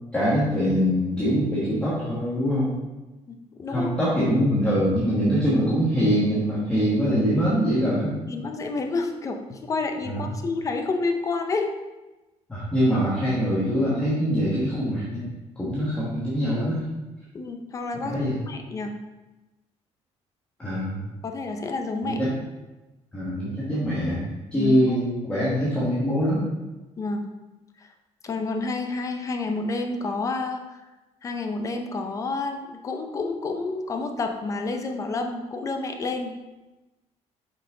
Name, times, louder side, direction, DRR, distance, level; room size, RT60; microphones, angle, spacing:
voice 1, 0.1-2.8 3.7-8.1 10.0-10.2 12.5-15.2 15.6-16.8 18.1-18.3 20.6-21.0 22.0-22.3 23.1-24.2 24.5-26.4, equal, 10° left, -9 dB, 1.4 m, -23 dB
voice 2, 3.3-3.9 8.3-11.7 17.3-18.9 21.2-22.2 24.5-25.0 27.0-27.3 27.8-27.9 28.2-30.8 31.2-36.4, left 3 dB, 25° left, 5 dB, 0.5 m, -29 dB
5.8 x 5.5 x 3.8 m, 1.1 s
cardioid pair, 175°, 12 cm